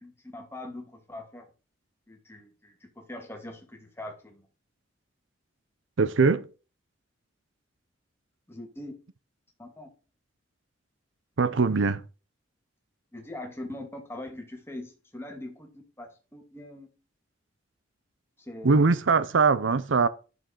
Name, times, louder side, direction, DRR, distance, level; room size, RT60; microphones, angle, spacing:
voice 1, 0.0-1.5 2.1-4.4 8.5-8.9 9.6-9.9 13.1-15.7 16.0-16.9 18.5-18.8, left 1 dB, 15° left, 2.3 m, -42 dB
voice 2, 6.0-6.5 11.4-12.0 18.6-20.1, right 4 dB, 80° right, 0.6 m, -22 dB
11.5 x 6.5 x 4.5 m
head